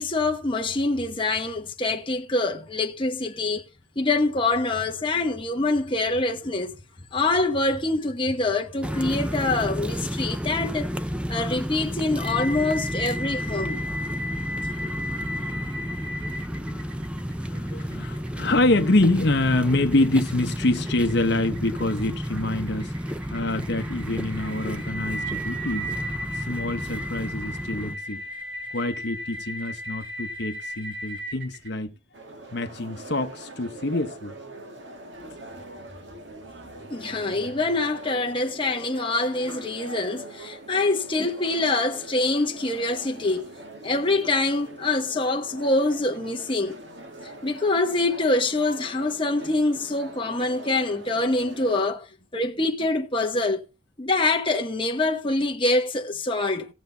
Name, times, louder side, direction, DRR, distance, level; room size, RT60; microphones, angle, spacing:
voice 1, 0.0-3.7 4.0-6.8 7.1-10.9 11.3-13.8 36.9-43.5 43.8-46.8 47.4-52.1 52.3-53.6 54.0-56.7, left 2 dB, 25° left, 1.2 m, -25 dB
sound 1, 8.8-28.0, equal, 5° right, 0.6 m, -32 dB
sound 2, 12.2-31.7, equal, 85° right, 3.4 m, -36 dB
voice 2, 15.5-15.9 16.6-22.9 23.3-25.9 26.3-28.2 28.7-31.9 32.5-34.3, left 2 dB, 60° left, 1.0 m, -26 dB
sound 3, 32.1-51.9, right 1 dB, 70° right, 1.8 m, -42 dB
18.0 x 7.1 x 4.0 m
head